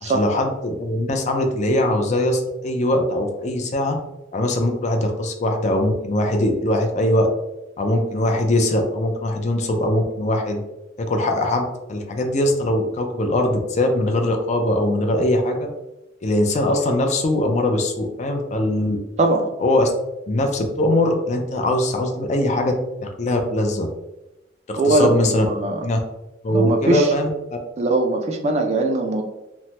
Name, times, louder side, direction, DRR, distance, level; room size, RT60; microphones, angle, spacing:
voice 1, 0.0-4.0 4.3-7.3 7.8-10.6 11.0-15.7 16.2-19.0 19.6-19.9 20.3-23.9 24.7-25.5 25.8-26.0 26.4-27.3, left 1 dB, 40° left, 3 dB, 0.4 m, -21 dB
voice 2, 19.2-19.5 24.8-25.8 26.5-27.1 27.8-29.2, right 2 dB, 35° right, 3 dB, 0.3 m, -20 dB
3.0 x 2.1 x 2.8 m, 0.95 s
head